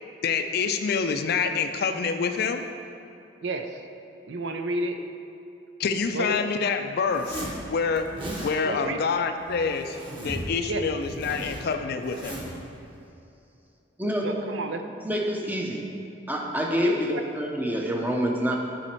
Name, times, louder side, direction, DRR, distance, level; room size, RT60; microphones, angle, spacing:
voice 1, 0.2-2.6 5.8-7.4 7.7-8.1 8.4-10.0 10.2-12.4, left 5 dB, 55° left, 7 dB, 0.4 m, -26 dB
voice 2, 3.4-3.8 4.3-5.0 6.1-6.3 8.6-9.0 10.7-10.8 14.2-14.8 16.8-17.2, right 2 dB, 70° right, 6 dB, 0.5 m, -30 dB
Zipper (clothing), 7.1-7.6 8.0-8.5 9.4-10.5 10.8-12.6, right 1 dB, 25° right, 1.3 m, -37 dB
voice 3, 14.0-14.4 15.0-15.9 16.3-18.6, equal, 10° right, 0 dB, 0.7 m, -27 dB
8.8 x 4.2 x 4.4 m, 2.6 s
head